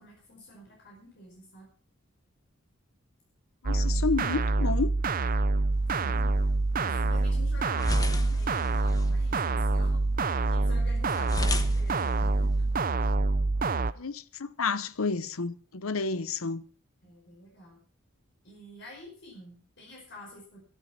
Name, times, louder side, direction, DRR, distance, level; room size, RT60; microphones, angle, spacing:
voice 1, 0.0-1.7 6.0-6.3 6.7-12.9 17.0-17.8 18.4-20.6, left 1 dB, 55° left, 5.4 m, -48 dB
voice 2, 3.6-4.9 14.0-16.6, left 4 dB, 85° left, 0.8 m, -30 dB
sound 1, 3.7-13.9, right 3 dB, 40° right, 0.6 m, -26 dB
sound 2, 5.7-12.8, left 2 dB, 15° left, 1.1 m, -38 dB
13.0 x 12.5 x 5.9 m
head